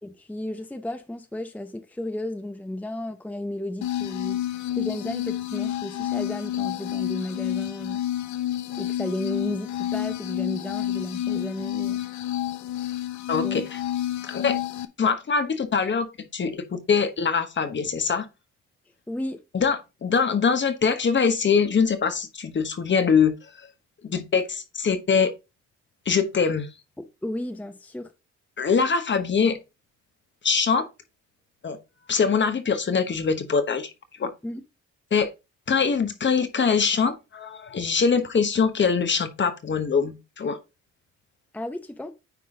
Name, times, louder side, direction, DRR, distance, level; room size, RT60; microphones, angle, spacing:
voice 1, 0.0-4.4 4.7-8.0 8.8-12.0 13.4-13.6 19.1-19.4 27.2-28.1 34.4-34.6 41.5-42.1, left 1 dB, 5° left, 0.7 m, -33 dB
sound 1, 3.8-14.8, left 12 dB, 70° left, 0.8 m, -29 dB
voice 2, 13.3-13.8 14.2-14.6 15.0-18.3 19.5-23.4 24.0-25.3 26.1-26.7 28.6-29.6 30.4-30.9 31.6-31.8 32.1-33.9 34.2-34.3 35.1-35.3 35.7-40.6, left 5 dB, 40° left, 1.2 m, -23 dB
9.4 x 3.8 x 3.8 m
cardioid pair, 90°, 30 cm